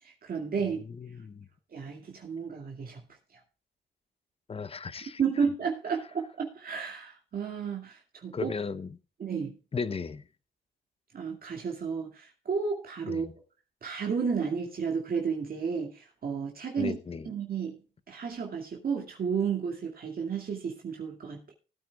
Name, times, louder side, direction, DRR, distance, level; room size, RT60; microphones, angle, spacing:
voice 1, 0.0-0.8 1.7-3.0 5.2-8.5 9.2-9.6 11.1-13.3 13.8-17.0 17.2-17.8 18.1-21.5, right 6 dB, 50° right, 2.3 m, -32 dB
voice 2, 0.7-1.5 4.5-5.2 8.3-8.9 9.7-10.2 13.1-13.3 16.8-17.3, left 5 dB, 30° left, 0.9 m, -35 dB
19.0 x 9.1 x 2.4 m
cardioid pair, 90°, 20 cm